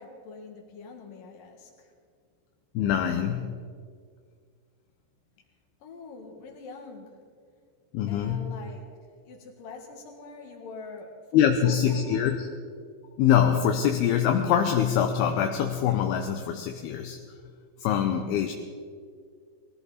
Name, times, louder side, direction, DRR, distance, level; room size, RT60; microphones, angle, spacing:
voice 1, 0.0-1.9 5.8-7.2 8.1-8.9 9.2-12.2, left 3 dB, 60° left, 2 dB, 3.1 m, -44 dB
voice 2, 2.7-3.6 7.9-8.5 11.3-12.5 13.2-17.2 17.8-18.5, left 9 dB, 80° left, 4 dB, 2.6 m, -24 dB
20.0 x 16.0 x 4.1 m, 2.1 s
omnidirectional pair, 4.9 m